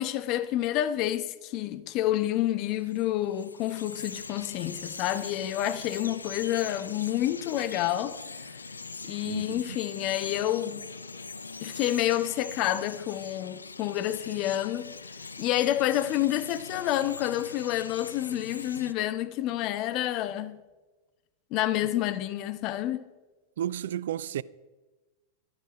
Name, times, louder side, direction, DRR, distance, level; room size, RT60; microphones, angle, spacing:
voice 1, 0.0-8.1 9.0-10.9 11.6-14.9 15.4-20.6 21.5-23.1, left 13 dB, 40° left, 0.8 m, -29 dB
Bird vocalization bird call bird song, 2.8-18.9, left 4 dB, 75° left, 0.6 m, -42 dB
voice 2, 9.3-9.6 23.6-24.4, right 10 dB, 60° right, 0.4 m, -32 dB
13.0 x 12.5 x 5.0 m
figure-of-eight pair, 90°, 0 cm